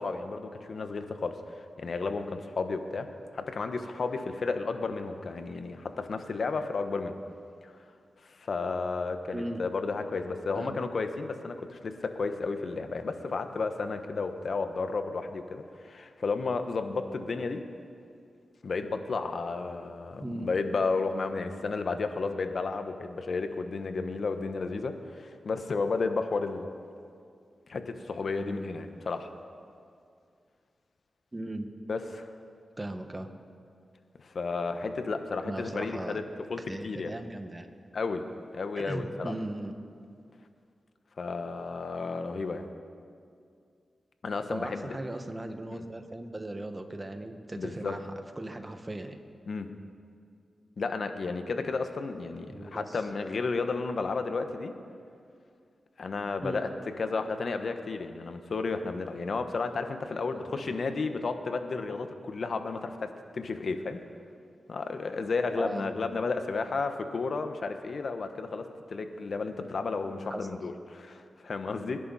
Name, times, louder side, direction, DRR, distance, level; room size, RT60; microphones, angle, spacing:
voice 1, 0.0-3.1 3.3-7.1 8.2-17.6 18.6-26.7 27.7-29.3 31.9-32.3 34.2-36.2 36.5-37.1 37.9-38.2 38.5-39.3 41.2-42.7 44.2-45.0 45.8-45.9 47.6-47.9 49.5-49.7 50.8-54.7 56.0-56.7 57.0-64.0 64.7-72.0, left 4 dB, 65° left, 7 dB, 1.3 m, -32 dB
voice 2, 31.3-31.7 32.8-33.3 35.4-36.3 36.7-37.7 38.7-39.7 44.5-48.1 48.4-49.1 52.5-53.0 56.4-56.6 60.3-60.8 65.6-65.9 70.3-70.5, right 1 dB, 30° right, 6 dB, 1.8 m, -38 dB
26.5 x 11.0 x 4.3 m, 2.3 s
cardioid pair, 45°, 0 cm